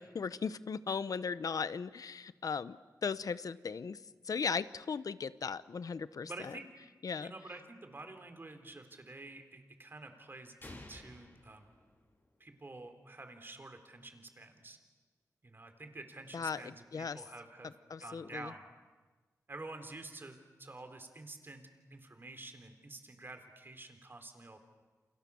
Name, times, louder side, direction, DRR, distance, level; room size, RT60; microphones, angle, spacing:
voice 1, 0.0-2.8 3.0-4.0 4.2-6.6 7.0-7.3 16.3-17.2 17.9-18.5, left 5 dB, 70° left, 15 dB, 0.9 m, -37 dB
voice 2, 6.3-6.7 7.2-11.7 12.4-14.8 15.4-18.6 19.5-24.6, right 2 dB, 35° right, 6 dB, 3.6 m, -49 dB
sound 1, 10.6-12.5, left 2 dB, 35° left, 4.7 m, -53 dB
29.0 x 28.0 x 7.1 m, 1.3 s
wide cardioid pair, 95°, 6 cm